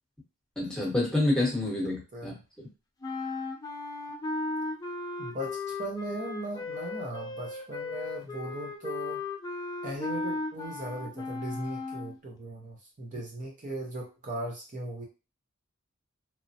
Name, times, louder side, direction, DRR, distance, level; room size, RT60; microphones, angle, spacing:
voice 1, 0.6-2.7, left 2 dB, 5° left, -4 dB, 1.0 m, -28 dB
sound 1, 3.0-12.2, left 3 dB, 20° left, 0.5 m, -36 dB
voice 2, 5.2-9.2 9.8-15.0, right 2 dB, 40° right, -1 dB, 0.6 m, -38 dB
3.0 x 2.1 x 2.7 m, 0.30 s
head